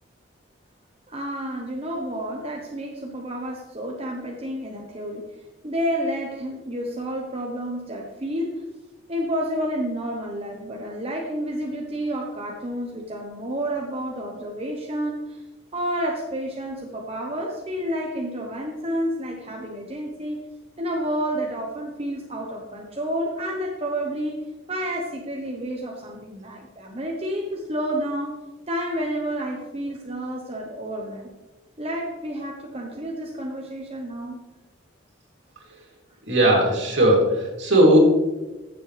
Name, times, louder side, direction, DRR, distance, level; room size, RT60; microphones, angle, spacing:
voice 1, 1.1-5.3 5.6-8.6 9.1-15.4 15.7-20.4 20.8-24.4 24.7-28.4 28.7-31.3 31.8-34.4 37.9-38.0, equal, 30° right, -1 dB, 1.1 m, -30 dB
voice 2, 36.3-38.0, right 1 dB, 65° right, -1 dB, 3.1 m, -17 dB
15.0 x 7.6 x 3.4 m, 1.1 s
head